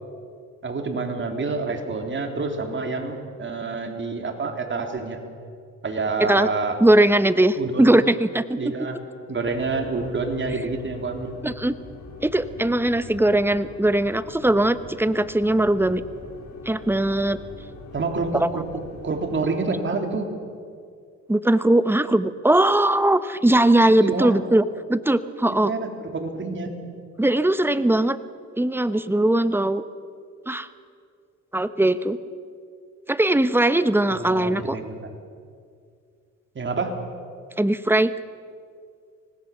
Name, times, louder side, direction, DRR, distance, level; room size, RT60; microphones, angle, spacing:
voice 1, 0.6-5.2 5.8-6.8 7.6-8.0 8.5-9.0 9.3-11.4 17.9-20.3 24.0-24.3 25.6-26.7 34.1-35.2 36.6-37.0, right 3 dB, 40° right, 4 dB, 3.6 m, -28 dB
voice 2, 6.8-8.6 11.4-11.7 12.2-16.0 16.7-17.4 18.3-18.5 21.3-24.6 24.9-25.7 27.2-28.2 28.6-29.8 30.5-30.7 31.5-32.2 33.1-34.8 37.6-38.1, right 1 dB, 5° right, 12 dB, 1.0 m, -20 dB
sound 1, 9.4-19.5, left 4 dB, 65° left, 5.0 m, -42 dB
25.0 x 19.0 x 7.3 m, 2.3 s
cardioid pair, 90°, 30 cm